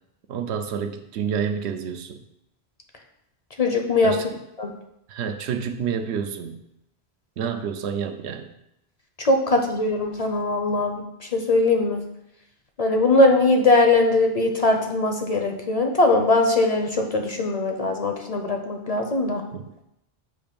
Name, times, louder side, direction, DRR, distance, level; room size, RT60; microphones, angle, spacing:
voice 1, 0.3-2.2 4.0-4.3 5.1-6.6 7.4-8.5 19.5-19.6, right 7 dB, 85° right, 7 dB, 0.9 m, -29 dB
voice 2, 3.6-4.1 4.6-4.7 9.2-11.0 11.3-12.0 12.8-19.4, left 2 dB, 45° left, 3 dB, 0.6 m, -20 dB
7.6 x 2.6 x 5.1 m, 0.82 s
omnidirectional pair, 1.1 m